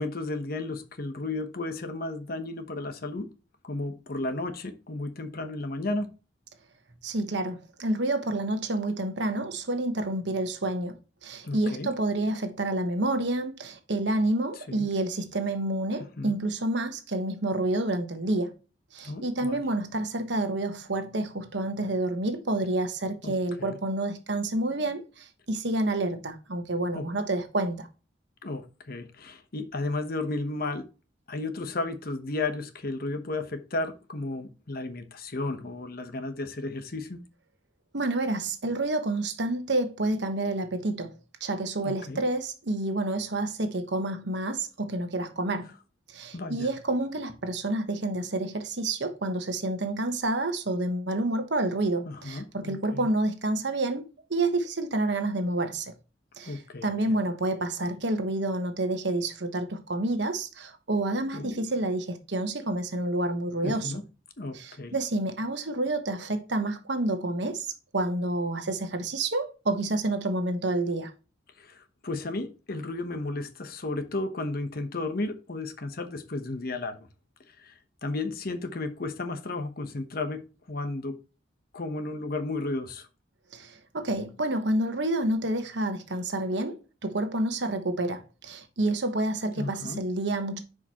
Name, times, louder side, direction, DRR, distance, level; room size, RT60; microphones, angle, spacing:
voice 1, 0.0-3.3 3.6-6.1 11.4-11.9 14.7-14.9 16.2-16.4 19.0-19.6 23.2-23.8 26.9-27.0 28.4-30.9 31.3-37.2 41.8-42.2 46.3-46.7 52.1-53.1 56.4-57.2 61.3-61.6 63.6-64.0 64.4-64.9 71.6-77.1 77.5-80.4 80.7-81.1 81.7-83.1 89.6-90.0, left 2 dB, 55° left, 1.0 m, -33 dB
voice 2, 7.0-18.5 18.9-27.9 37.9-45.7 46.1-55.9 56.4-63.9 64.5-71.1 83.5-90.6, right 2 dB, 65° right, 1.1 m, -29 dB
10.5 x 5.0 x 2.9 m
head